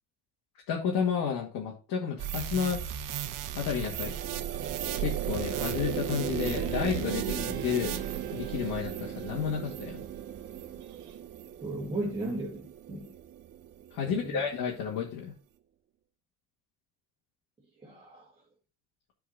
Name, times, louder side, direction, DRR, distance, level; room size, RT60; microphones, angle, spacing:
voice 1, 0.7-3.2 3.5-4.1 5.0-8.0 8.3-10.0 13.9-15.3, left 7 dB, 70° left, 2.1 m, -31 dB
sound 1, 2.2-10.8 11.4-11.5, right 10 dB, 60° right, 1.0 m, -37 dB
sound 2, 3.3-14.7, right 10 dB, 35° right, 0.4 m, -38 dB
Guitar, 6.4-11.2, right 12 dB, 85° right, 1.5 m, -43 dB
voice 2, 11.6-13.1 14.0-14.4 17.8-18.3, right 2 dB, 15° right, 2.0 m, -36 dB
10.5 x 4.6 x 4.1 m
cardioid pair, 115°, 36 cm